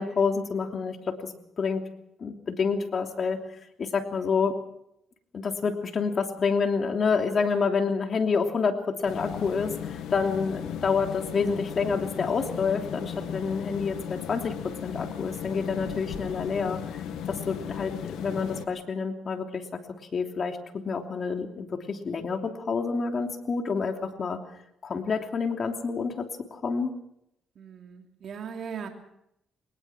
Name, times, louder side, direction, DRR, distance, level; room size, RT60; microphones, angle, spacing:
voice 1, 0.0-1.8 2.2-3.4 3.8-4.5 5.3-16.8 17.3-19.8 20.1-24.4 24.8-26.9, left 5 dB, 45° left, 4 dB, 3.0 m, -28 dB
sound 1, 9.0-18.6, left 9 dB, 85° left, 2.2 m, -36 dB
voice 2, 17.4-17.8 27.6-28.9, right 7 dB, 60° right, 3 dB, 3.2 m, -40 dB
22.5 x 20.0 x 6.2 m, 0.79 s
cardioid pair, 90°, 0 cm